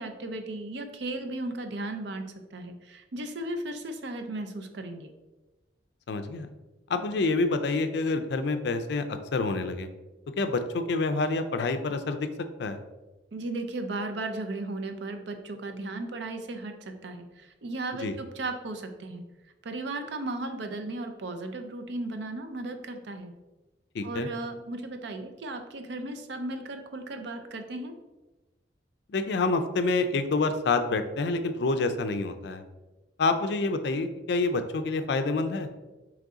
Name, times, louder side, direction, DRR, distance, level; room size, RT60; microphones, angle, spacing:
voice 1, 0.0-5.1 13.3-19.2 19.6-23.3 24.0-27.9, right 2 dB, 70° right, 7 dB, 0.5 m, -36 dB
voice 2, 6.1-6.5 6.9-9.9 10.4-12.3 12.6-12.8 18.0-18.2 23.9-24.3 29.1-32.6 33.2-35.7, left 3 dB, 65° left, 9 dB, 0.4 m, -27 dB
3.8 x 3.2 x 3.6 m, 1.1 s
head